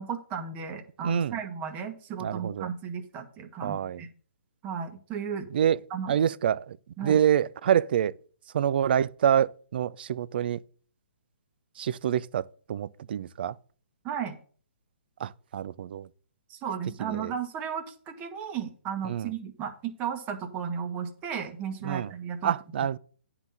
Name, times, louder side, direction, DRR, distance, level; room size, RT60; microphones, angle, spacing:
voice 1, 0.0-4.1 4.6-5.5 5.9-6.1 7.0-7.2 14.0-14.4 16.5-22.5, right 7 dB, 25° right, 1.5 m, -34 dB
voice 2, 1.0-1.4 2.2-2.7 3.6-4.0 5.5-5.8 6.1-8.1 8.5-10.6 11.8-12.4 12.7-13.5 15.2-16.1 17.0-17.3 19.0-19.3 21.8-22.1 22.4-23.0, right 9 dB, 50° right, 0.5 m, -26 dB
9.7 x 4.0 x 7.3 m
figure-of-eight pair, 135°, 7 cm